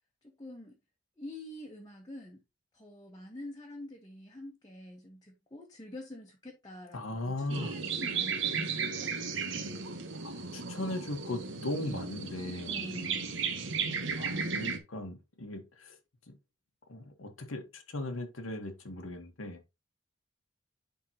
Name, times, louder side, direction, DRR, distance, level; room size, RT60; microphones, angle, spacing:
voice 1, 0.2-0.7 1.2-2.4 2.7-9.1 12.7-13.3, left 1 dB, 20° left, 1.2 m, -46 dB
voice 2, 6.9-7.7 10.2-12.7 14.1-16.0 16.3-16.4 16.9-19.6, left 1 dB, 85° left, 1.4 m, -38 dB
sound 1, 7.5-14.8, right 5 dB, 65° right, 1.2 m, -35 dB
10.5 x 3.8 x 2.9 m
head